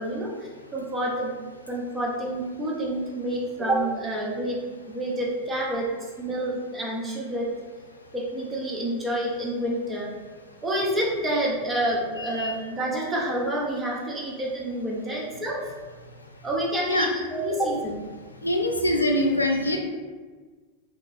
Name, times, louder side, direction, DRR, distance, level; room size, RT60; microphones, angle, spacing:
voice 1, 0.0-1.4 1.7-4.6 4.9-7.5 8.1-10.1 10.6-15.7 16.4-18.1, right 1 dB, 15° right, -4 dB, 0.5 m, -28 dB
voice 2, 18.4-19.8, left 1 dB, 85° left, 2 dB, 0.3 m, -23 dB
2.7 x 2.3 x 2.5 m, 1.4 s
figure-of-eight pair, 90°, 0 cm